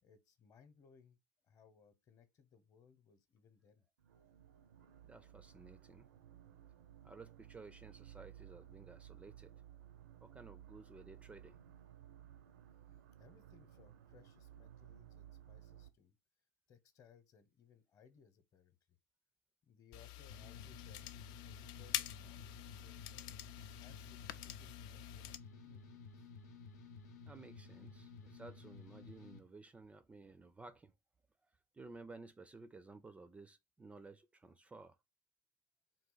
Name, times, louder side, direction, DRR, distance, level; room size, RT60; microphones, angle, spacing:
voice 1, 0.0-1.2 1.4-3.8 12.9-16.2 16.7-19.0 19.6-26.3, left 6 dB, 40° left, 0.9 m, -66 dB
sound 1, 4.0-15.9, right 11 dB, 80° right, 0.6 m, -58 dB
voice 2, 5.0-6.1 7.0-9.5 10.2-11.6 27.3-30.9 31.4-35.0, right 3 dB, 15° right, 0.4 m, -55 dB
sound 2, 19.9-25.4, left 13 dB, 55° left, 0.4 m, -46 dB
sound 3, 20.3-29.4, left 4 dB, 85° left, 0.8 m, -54 dB
3.8 x 2.5 x 3.9 m
hypercardioid pair, 90°, 9 cm